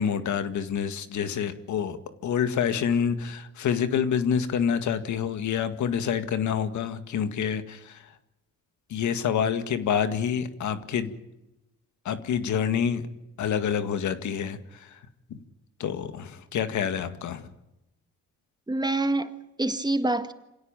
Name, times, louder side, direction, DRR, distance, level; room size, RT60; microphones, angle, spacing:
voice 1, 0.0-8.1 8.9-11.2 12.1-13.1 13.4-15.0 15.3-15.4 15.8-17.5, left 7 dB, 70° left, 2.0 m, -27 dB
voice 2, 18.7-20.3, right 2 dB, 15° right, 1.7 m, -26 dB
27.0 x 17.0 x 9.0 m
cardioid pair, 90°, 30 cm